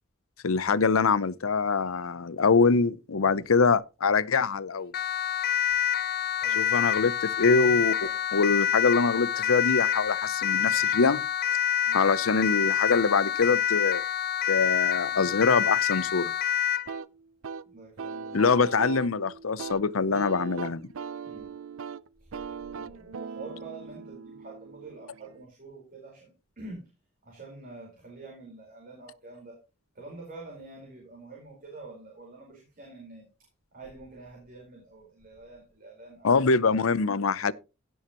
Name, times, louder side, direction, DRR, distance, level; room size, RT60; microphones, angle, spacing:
voice 1, 0.4-4.9 6.6-7.9 8.3-11.2 11.9-14.0 14.5-16.3 18.3-20.9 36.2-37.5, left 4 dB, 85° left, 0.7 m, -24 dB
Siren, 4.9-16.9, left 10 dB, 50° left, 0.4 m, -27 dB
voice 2, 6.3-6.8 8.0-8.2 11.8-12.0 17.6-18.5 21.2-21.5 22.2-22.3 22.7-26.3 26.6-26.9 27.2-29.6 29.9-36.5, right 3 dB, 45° right, 4.7 m, -46 dB
sound 1, 16.9-25.4, right 5 dB, 75° right, 0.5 m, -40 dB
17.0 x 7.2 x 3.0 m
head